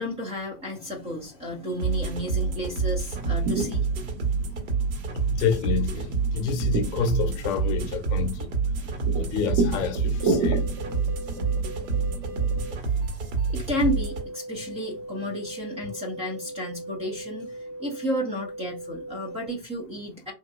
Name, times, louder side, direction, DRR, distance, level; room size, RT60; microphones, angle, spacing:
voice 1, 0.0-3.9 13.0-13.1 13.5-20.3, equal, 15° right, 0.5 m, -32 dB
sound 1, 1.8-14.2, right 5 dB, 60° right, 1.5 m, -27 dB
sound 2, 3.0-12.8, right 3 dB, 40° right, 0.9 m, -32 dB
voice 2, 5.3-8.4 9.2-10.6, left 6 dB, 45° left, 0.7 m, -28 dB
sound 3, 10.1-19.5, right 1 dB, 85° right, 1.2 m, -39 dB
3.0 x 2.7 x 2.5 m
hypercardioid pair, 125°, 49 cm